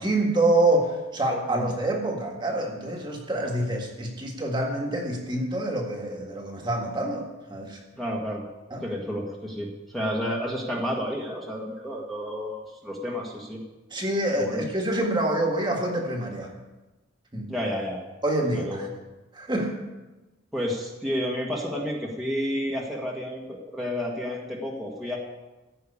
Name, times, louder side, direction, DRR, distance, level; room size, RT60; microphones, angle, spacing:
voice 1, 0.0-7.2 7.5-7.8 8.7-8.8 13.9-16.5 17.3-17.5 18.2-18.7 19.3-19.7, right 1 dB, 20° right, 0 dB, 1.7 m, -26 dB
voice 2, 8.0-8.4 8.8-13.6 14.4-14.6 17.5-18.0 18.5-18.9 20.5-25.2, equal, ahead, -4 dB, 1.6 m, -31 dB
15.0 x 5.6 x 8.5 m, 1.1 s
head